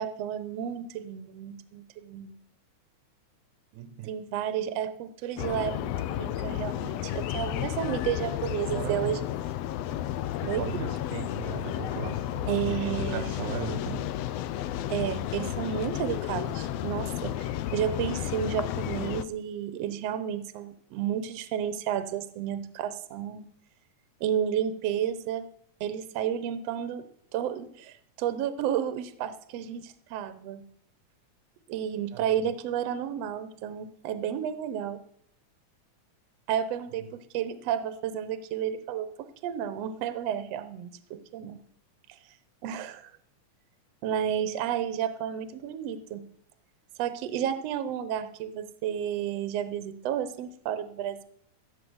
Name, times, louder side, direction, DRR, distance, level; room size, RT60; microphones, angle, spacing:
voice 1, 0.0-2.4 4.0-9.2 10.5-10.6 12.5-13.3 14.9-23.4 24.2-25.5 25.8-27.1 27.3-30.7 31.7-35.0 36.5-39.1 39.4-41.6 42.6-43.1 44.0-46.3 47.0-51.2, right 9 dB, 65° right, 1.8 m, -31 dB
voice 2, 3.7-4.2 8.7-9.2 10.4-14.1 32.1-32.5, right 10 dB, 85° right, 2.3 m, -37 dB
sound 1, 5.4-19.3, left 12 dB, 80° left, 1.5 m, -32 dB
15.5 x 6.0 x 7.9 m
omnidirectional pair, 3.5 m